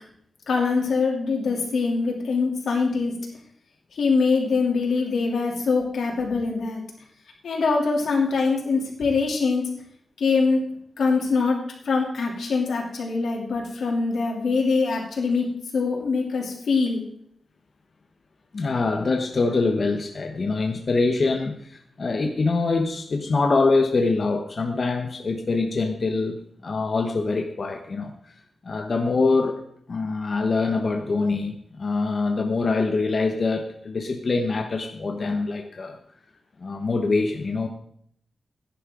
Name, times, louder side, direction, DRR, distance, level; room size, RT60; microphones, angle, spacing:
voice 1, 0.5-3.1 3.9-6.8 7.4-9.6 10.2-10.6 11.0-11.6 11.8-15.5 15.7-17.0, left 4 dB, 90° left, -1 dB, 3.0 m, -23 dB
voice 2, 18.5-28.1 28.6-29.6 29.9-36.0 36.6-37.7, left 3 dB, 40° left, 4 dB, 1.0 m, -24 dB
16.0 x 10.5 x 3.8 m, 0.67 s
wide cardioid pair, 160°, 0 cm